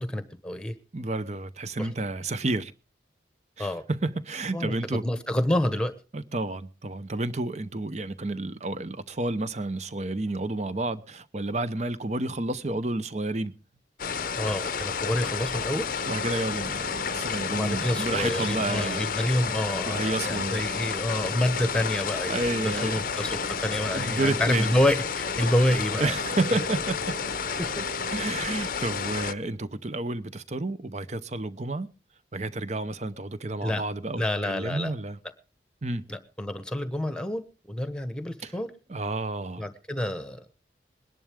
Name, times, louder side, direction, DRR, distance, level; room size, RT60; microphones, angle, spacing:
voice 1, 0.0-0.7 1.8-1.9 3.6-3.8 4.5-5.9 14.4-15.9 17.5-26.1 26.5-26.6 27.6-27.7 33.6-33.8 34.2-34.9 36.1-38.7 39.6-40.5, left 1 dB, 5° left, 1.2 m, -28 dB
voice 2, 0.9-2.7 3.6-5.0 6.1-13.5 16.1-19.1 19.9-20.6 22.3-23.1 23.9-24.7 26.0-27.2 27.8-27.9 28.1-31.9 32.3-35.2 35.8-36.1 38.4-38.5 38.9-39.6, right 2 dB, 35° right, 0.8 m, -30 dB
sound 1, 14.0-29.3, left 6 dB, 50° left, 0.6 m, -31 dB
sound 2, 15.6-28.5, right 4 dB, 60° right, 3.6 m, -45 dB
21.5 x 11.0 x 3.5 m
head